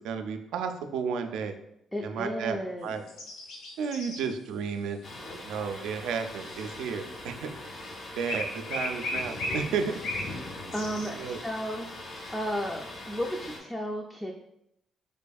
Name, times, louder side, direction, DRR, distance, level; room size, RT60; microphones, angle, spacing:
voice 1, 0.0-1.6 2.0-3.0 3.8-5.0 5.4-7.5 8.1-10.0 11.1-11.4, right 6 dB, 85° right, 7 dB, 0.3 m, -32 dB
voice 2, 1.9-2.9 10.7-14.3, equal, 10° left, 0 dB, 0.4 m, -34 dB
sound 1, 3.1-4.2 5.1-7.0 8.3-10.4 10.7-11.1, left 2 dB, 80° left, 0.7 m, -35 dB
Thunder, 5.0-13.6, left 1 dB, 50° left, 0.9 m, -41 dB
3.5 x 3.3 x 2.3 m, 0.79 s
cardioid pair, 90°, 0 cm